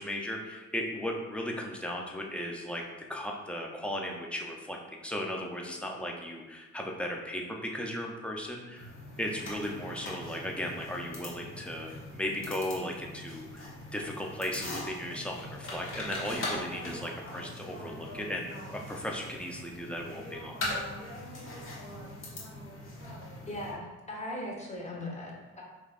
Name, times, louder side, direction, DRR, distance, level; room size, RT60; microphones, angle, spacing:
voice 1, 0.0-2.8 3.1-20.8, left 1 dB, 5° left, 0 dB, 0.6 m, -36 dB
sound 1, 8.8-23.7, left 1 dB, 45° left, 1.4 m, -41 dB
voice 2, 23.5-25.6, left 1 dB, 25° left, -2 dB, 1.1 m, -39 dB
5.1 x 3.0 x 2.5 m, 1.2 s
cardioid pair, 90°, 30 cm